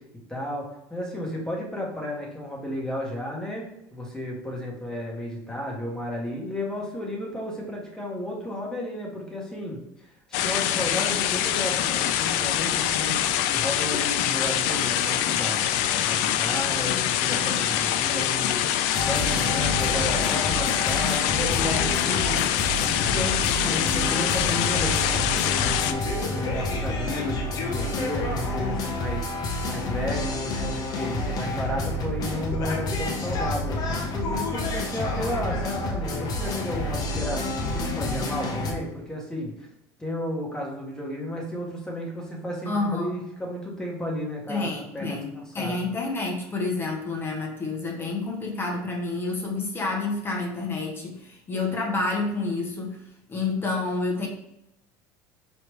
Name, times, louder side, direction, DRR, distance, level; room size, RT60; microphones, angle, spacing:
voice 1, 0.3-33.8 34.1-39.7 40.0-45.9, left 1 dB, 5° left, -2 dB, 1.4 m, -33 dB
sound 1, 10.3-25.9, left 11 dB, 75° left, 0.4 m, -25 dB
sound 2, 18.9-38.7, left 2 dB, 45° left, 0.9 m, -29 dB
voice 2, 42.6-43.2 44.5-53.0 53.3-54.3, left 3 dB, 25° left, 0 dB, 1.1 m, -29 dB
4.8 x 3.3 x 3.3 m, 0.85 s
supercardioid pair, 115°, 9 cm